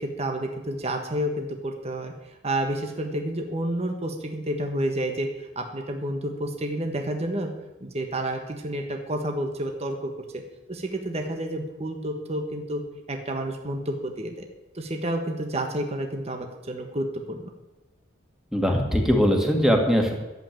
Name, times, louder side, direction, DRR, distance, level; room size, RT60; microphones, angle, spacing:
voice 1, 0.0-7.5 7.8-10.1 10.7-12.8 13.1-14.4 14.7-17.5, right 1 dB, 30° right, 4 dB, 1.4 m, -30 dB
voice 2, 18.5-20.1, equal, ahead, 1 dB, 2.1 m, -21 dB
12.0 x 8.0 x 9.0 m, 1.1 s
head